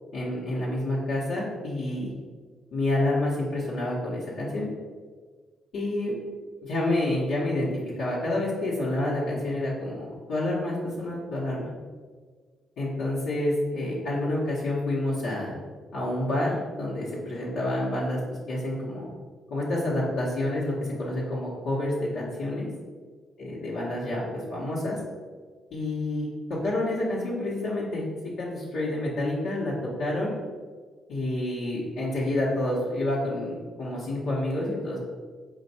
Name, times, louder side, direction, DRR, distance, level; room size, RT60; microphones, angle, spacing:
voice 1, 0.1-2.1 2.7-4.7 5.7-6.1 6.6-7.7 8.0-11.7 12.8-15.5 15.9-18.2 18.5-19.1 19.5-22.7 23.4-25.0 25.7-28.1 28.4-29.7 30.0-30.3 31.1-35.0, left 1 dB, 75° left, -7 dB, 0.9 m, -28 dB
4.3 x 2.3 x 4.1 m, 1.5 s
cardioid pair, 90°, 0 cm